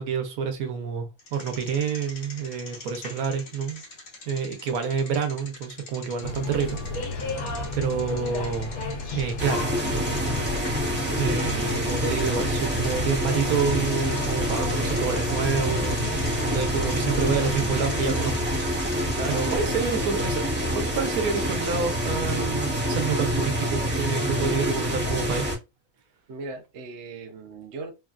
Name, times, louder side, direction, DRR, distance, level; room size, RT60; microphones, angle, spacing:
voice 1, 0.0-3.8 4.3-8.7 9.1-10.2 11.2-16.0 16.5-18.4 19.3-25.4, right 6 dB, 80° right, 1.2 m, -28 dB
Bicycle, 1.2-19.6, left 2 dB, 45° left, 0.9 m, -44 dB
sound 1, 6.2-18.0, left 2 dB, 80° left, 1.2 m, -34 dB
sound 2, 9.4-25.6, equal, 10° right, 0.7 m, -27 dB
voice 2, 19.1-20.2 26.3-27.9, right 3 dB, 65° right, 0.8 m, -37 dB
3.2 x 2.2 x 2.4 m
omnidirectional pair, 1.5 m